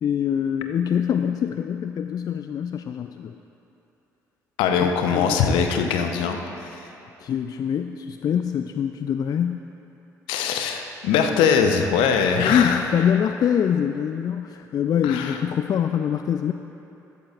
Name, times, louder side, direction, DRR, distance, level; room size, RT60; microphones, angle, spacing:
voice 1, 0.0-3.4 4.8-5.7 7.2-9.6 12.4-16.5, left 8 dB, 45° left, 8 dB, 0.4 m, -24 dB
voice 2, 4.6-6.8 10.3-12.8 15.0-15.4, left 6 dB, 70° left, 5 dB, 0.8 m, -22 dB
14.0 x 13.5 x 2.4 m, 3.0 s
figure-of-eight pair, 45°, 9 cm